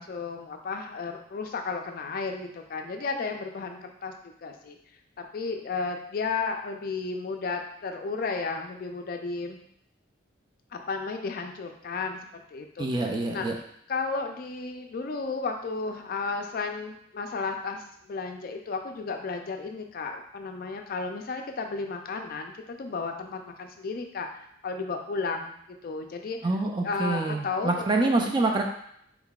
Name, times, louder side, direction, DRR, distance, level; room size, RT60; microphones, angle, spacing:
voice 1, 0.0-4.8 5.2-9.6 10.7-13.6 13.9-24.3 24.6-25.6 25.8-26.4 26.8-28.1, left 4 dB, 50° left, 4 dB, 0.3 m, -33 dB
voice 2, 12.8-13.6 26.4-28.6, right 2 dB, 25° right, 2 dB, 0.3 m, -26 dB
3.7 x 3.4 x 2.3 m, 0.71 s
head